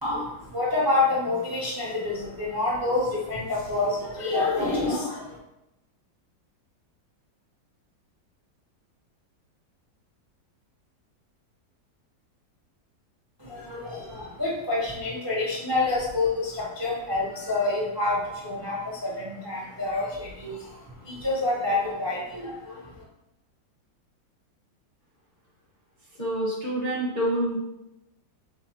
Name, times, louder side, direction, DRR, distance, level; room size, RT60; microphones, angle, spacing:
voice 1, 0.0-5.4 13.4-23.0, left 2 dB, 25° right, -5 dB, 0.4 m, -28 dB
voice 2, 26.2-27.6, right 1 dB, 40° left, -6 dB, 0.7 m, -27 dB
5.0 x 3.5 x 2.8 m, 0.90 s
omnidirectional pair, 2.1 m